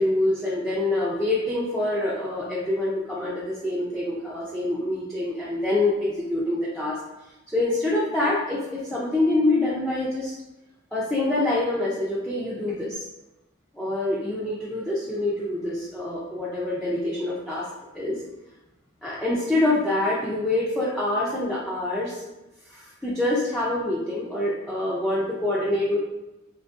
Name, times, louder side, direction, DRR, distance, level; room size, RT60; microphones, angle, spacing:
voice 1, 0.0-7.0 7.5-10.3 10.9-13.0 13.7-18.2 19.0-22.2 22.7-26.0, left 2 dB, ahead, -8 dB, 0.4 m, -26 dB
2.8 x 2.6 x 3.5 m, 1.0 s
head